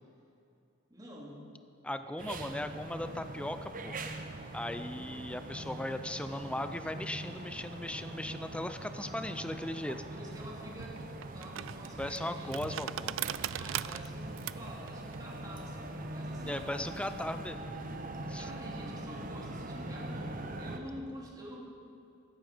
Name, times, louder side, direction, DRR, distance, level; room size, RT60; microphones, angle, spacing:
voice 1, 0.9-1.5 9.0-12.5 13.5-16.8 18.3-21.6, equal, 20° right, -3 dB, 2.7 m, -48 dB
voice 2, 1.8-4.0 4.5-10.0 12.0-13.1 16.4-17.6 18.3-18.5, left 1 dB, 5° left, 9 dB, 0.5 m, -38 dB
sound 1, 2.2-20.8, right 1 dB, 45° right, 0.9 m, -42 dB
sound 2, 10.3-17.0, right 11 dB, 90° right, 0.4 m, -41 dB
15.0 x 13.0 x 5.1 m, 2.5 s
head